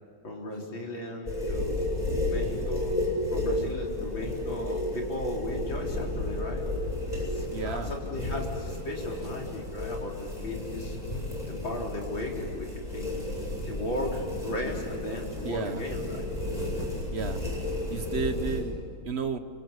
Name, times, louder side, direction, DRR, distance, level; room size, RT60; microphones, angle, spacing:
voice 1, 0.2-2.9 3.3-6.6 7.1-11.0 11.4-13.3 13.7-16.3, left 1 dB, 60° left, -1 dB, 4.8 m, -36 dB
sound 1, 1.3-18.6, left 1 dB, 15° left, 8.1 m, -32 dB
voice 2, 7.5-7.9 15.4-15.8 17.1-17.4 17.9-19.4, right 5 dB, 40° right, 9 dB, 1.1 m, -32 dB
29.0 x 25.0 x 8.3 m, 2.3 s
omnidirectional pair, 2.3 m